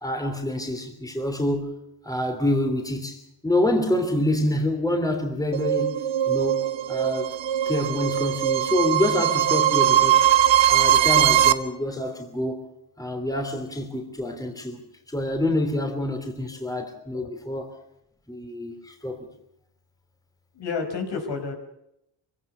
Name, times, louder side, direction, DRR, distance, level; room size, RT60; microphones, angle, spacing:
voice 1, 0.0-1.7 2.0-6.6 6.9-7.3 7.6-10.3 10.7-12.7 13.0-14.8 15.1-17.7 18.3-19.2, left 1 dB, 10° left, 3.1 m, -27 dB
sound 1, 5.5-11.5, right 11 dB, 80° right, 1.1 m, -20 dB
voice 2, 20.5-21.5, left 5 dB, 70° left, 5.3 m, -30 dB
24.5 x 17.0 x 6.8 m
cardioid pair, 105°, 43 cm